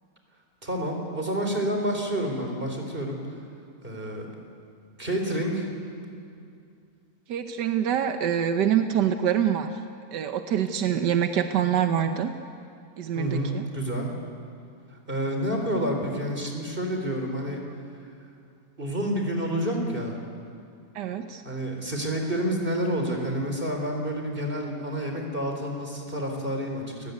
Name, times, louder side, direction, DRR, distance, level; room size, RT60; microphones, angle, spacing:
voice 1, 0.6-3.2 3.8-4.3 5.0-5.7 13.1-14.1 14.9-17.6 18.8-20.2 21.4-27.1, equal, 30° right, 2 dB, 4.2 m, -29 dB
voice 2, 7.3-9.7 10.1-12.3 13.0-13.6 20.9-21.4, right 9 dB, 85° right, 7 dB, 1.6 m, -25 dB
29.5 x 19.5 x 9.6 m, 2.5 s
omnidirectional pair, 1.8 m